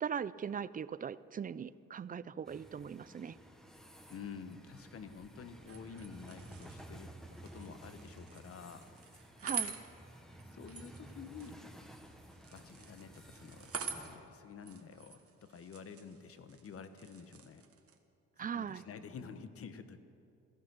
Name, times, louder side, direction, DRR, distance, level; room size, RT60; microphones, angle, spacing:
voice 1, 0.0-3.4 9.4-9.7 18.4-18.8, right 7 dB, 30° right, 17 dB, 0.4 m, -39 dB
sound 1, 2.4-14.1, right 1 dB, ahead, 1.3 m, -54 dB
voice 2, 4.1-7.1 7.4-8.8 10.5-11.6 12.5-17.6 18.5-20.0, left 6 dB, 50° left, 10 dB, 1.1 m, -49 dB
sound 2, 5.6-18.0, right 5 dB, 50° right, 1.5 m, -47 dB
16.5 x 13.5 x 6.2 m, 2.6 s
cardioid pair, 90°, 30 cm